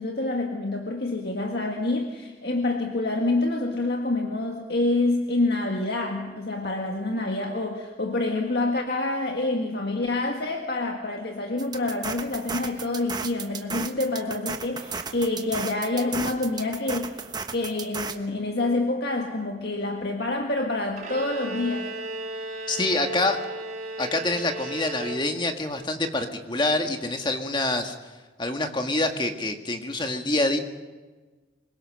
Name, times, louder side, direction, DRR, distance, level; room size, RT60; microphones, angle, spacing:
voice 1, 0.0-17.2 17.5-21.9, left 2 dB, 60° left, 2 dB, 1.9 m, -27 dB
sound 1, 11.6-18.2, right 5 dB, 20° right, 1.2 m, -34 dB
Bowed string instrument, 21.0-25.7, right 1 dB, 40° right, 4.2 m, -35 dB
voice 2, 22.7-23.4 24.0-28.0 28.4-30.6, left 2 dB, 25° left, 5 dB, 1.8 m, -26 dB
25.0 x 22.0 x 6.5 m, 1.3 s
head